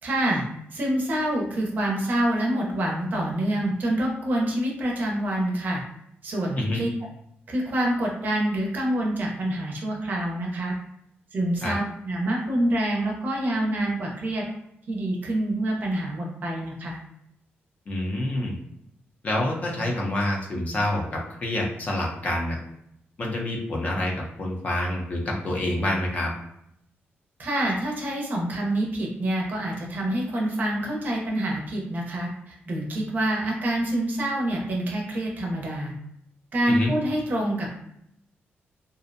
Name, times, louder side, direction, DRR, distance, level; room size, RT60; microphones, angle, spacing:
voice 1, 0.0-0.4 0.7-5.8 6.2-6.9 7.5-10.7 11.3-14.4 14.9-17.0 27.4-35.9 36.5-37.8, right 1 dB, 45° right, -1 dB, 0.5 m, -26 dB
voice 2, 17.9-18.6 19.2-22.6 23.2-26.3 36.7-36.9, left 1 dB, 35° left, -1 dB, 0.5 m, -27 dB
2.5 x 2.0 x 2.5 m, 0.76 s
wide cardioid pair, 155°, 4 cm